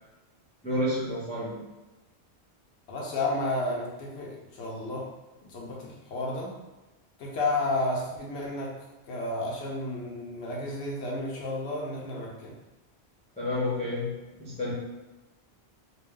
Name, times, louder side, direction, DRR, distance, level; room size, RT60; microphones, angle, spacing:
voice 1, 0.6-1.6 13.4-14.1 14.4-14.7, left 1 dB, 10° left, -9 dB, 0.5 m, -29 dB
voice 2, 2.9-5.1 5.4-6.6 7.2-8.8 9.1-12.5, left 2 dB, 75° left, -3 dB, 0.9 m, -32 dB
2.4 x 2.1 x 3.6 m, 1.1 s
omnidirectional pair, 1.1 m